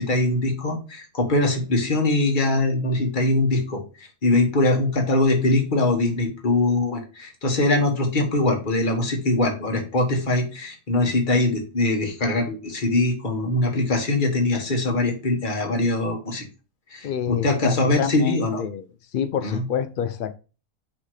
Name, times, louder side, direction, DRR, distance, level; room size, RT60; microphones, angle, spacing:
voice 1, 0.0-16.5 16.9-18.6 19.4-19.6, left 2 dB, 35° left, 3 dB, 1.6 m, -22 dB
voice 2, 17.0-18.8 19.1-20.4, left 9 dB, 80° left, 11 dB, 0.4 m, -28 dB
5.2 x 4.3 x 4.8 m, 0.33 s
omnidirectional pair, 1.5 m